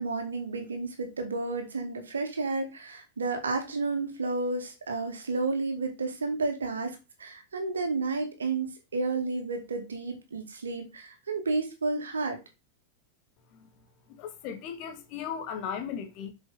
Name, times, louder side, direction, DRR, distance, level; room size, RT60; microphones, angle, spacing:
voice 1, 0.0-8.7 8.9-12.4, right 3 dB, 70° right, 2.1 m, -31 dB
voice 2, 14.2-16.3, left 8 dB, 40° left, 2.0 m, -36 dB
7.9 x 6.1 x 4.1 m
figure-of-eight pair, 90°, 0 cm